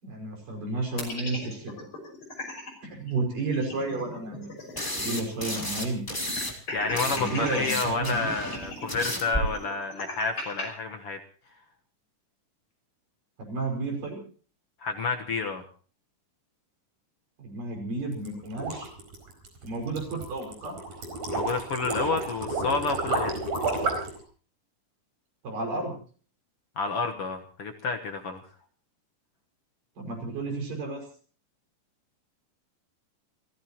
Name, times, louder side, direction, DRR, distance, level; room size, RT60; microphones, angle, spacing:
voice 1, 0.0-1.7 2.8-4.5 5.0-6.0 7.0-8.3 13.4-14.2 17.4-18.9 19.6-20.8 25.4-25.9 30.0-31.0, right 3 dB, 80° right, 1 dB, 7.3 m, -32 dB
sound 1, 1.0-2.7 3.1-3.2 3.4-5.2 5.5-5.6 6.1-7.7 8.3-10.6, left 2 dB, 40° left, 6.5 m, -37 dB
sound 2, 4.8-6.5 6.8-9.4, left 1 dB, 5° left, 2.8 m, -32 dB
voice 2, 6.7-11.2 14.8-15.6 21.3-23.3 26.8-28.4, left 4 dB, 55° left, 4 dB, 1.8 m, -29 dB
sound 3, 18.1-24.2, right 3 dB, 55° right, 5.7 m, -31 dB
29.0 x 15.5 x 3.0 m, 0.41 s
omnidirectional pair, 3.8 m